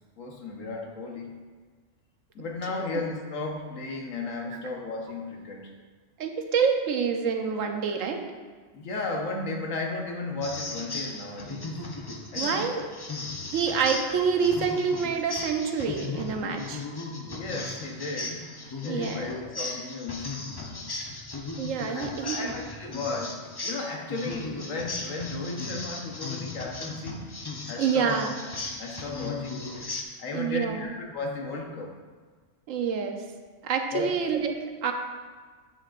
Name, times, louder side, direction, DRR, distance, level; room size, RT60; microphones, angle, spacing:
voice 1, 0.2-1.4 2.3-5.7 8.7-11.7 12.3-12.8 17.3-18.5 18.8-20.9 21.8-27.2 27.6-28.1 28.7-29.9 30.2-31.9 33.9-34.1, left 3 dB, 85° left, 1 dB, 1.4 m, -35 dB
voice 2, 6.2-8.2 12.4-12.9 13.5-16.8 18.9-19.4 21.6-22.5 27.8-28.4 30.3-30.9 32.7-33.2 33.6-34.9, right 6 dB, 90° right, 4 dB, 1.1 m, -27 dB
sound 1, 10.4-30.0, left 3 dB, 30° left, 0.4 m, -36 dB
8.6 x 7.6 x 2.5 m, 1.5 s
omnidirectional pair, 1.3 m